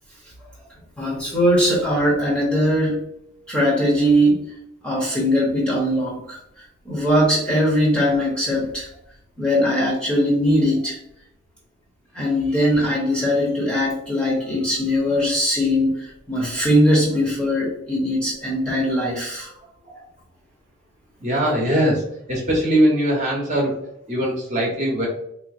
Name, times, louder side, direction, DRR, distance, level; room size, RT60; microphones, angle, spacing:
voice 1, 1.0-3.0 3.5-4.5 4.8-6.4 6.8-8.9 9.4-11.0 12.1-19.5, equal, 5° left, -5 dB, 0.9 m, -20 dB
voice 2, 21.2-23.7 24.1-25.1, equal, 35° right, -3 dB, 1.1 m, -21 dB
3.8 x 2.9 x 2.5 m, 0.74 s
head